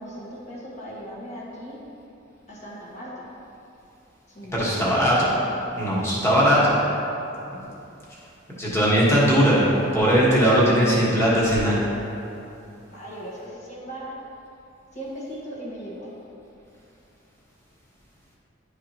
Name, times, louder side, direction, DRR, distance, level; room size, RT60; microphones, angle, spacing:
voice 1, 0.0-1.8 2.5-3.3 4.3-5.1 5.9-6.3 6.6-6.9 12.9-14.1 14.9-16.1, equal, 40° left, -6 dB, 1.6 m, -38 dB
voice 2, 4.5-5.2 5.7-6.7 8.6-11.8, equal, 15° left, -7 dB, 1.5 m, -19 dB
10.5 x 4.9 x 3.0 m, 2.8 s
head